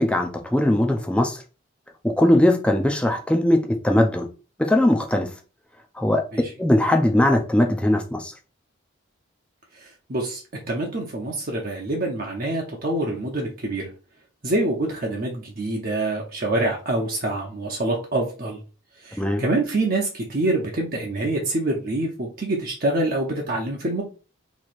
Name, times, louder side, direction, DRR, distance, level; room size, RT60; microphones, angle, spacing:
voice 1, 0.0-1.4 2.0-3.6 3.8-4.3 4.7-5.3 6.0-6.2 6.6-8.3 19.2-19.4, left 1 dB, 5° left, 0.5 m, -20 dB
voice 2, 10.1-10.4 10.7-13.9 14.4-18.6 19.0-24.0, right 2 dB, 45° right, 0.7 m, -25 dB
3.1 x 2.8 x 4.2 m
head